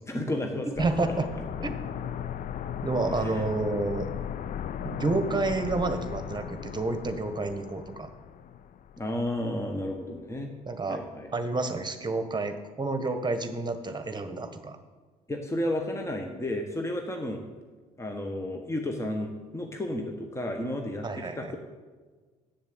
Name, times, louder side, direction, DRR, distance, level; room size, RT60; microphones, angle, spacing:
voice 1, 0.1-1.1 3.1-3.4 9.0-10.5 10.9-11.5 15.3-17.5 18.0-21.6, left 1 dB, 15° left, 3 dB, 1.4 m, -32 dB
sound 1, 0.8-9.5 9.7-9.8, left 9 dB, 50° left, 0.6 m, -37 dB
voice 2, 0.8-1.3 1.6-1.7 2.8-4.1 4.8-8.1 10.7-11.0 11.3-14.8 21.0-21.5, right 3 dB, 25° right, 8 dB, 1.4 m, -29 dB
8.2 x 7.1 x 8.1 m, 1.4 s
hypercardioid pair, 50°, 18 cm